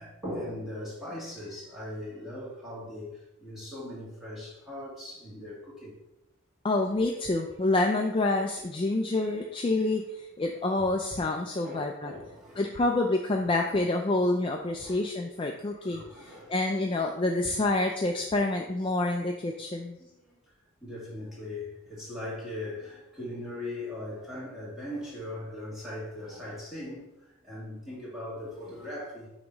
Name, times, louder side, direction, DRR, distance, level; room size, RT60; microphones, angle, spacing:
voice 1, 0.0-5.9 8.9-9.1 10.8-10.9 11.2-12.6 13.3-13.4 14.8-15.1 15.9-16.5 20.0-20.4 20.8-29.3, left 1 dB, ahead, -8 dB, 2.0 m, -40 dB
voice 2, 6.6-12.1 12.6-20.0, left 2 dB, 25° left, 2 dB, 0.3 m, -28 dB
7.1 x 2.9 x 5.2 m, 0.92 s
head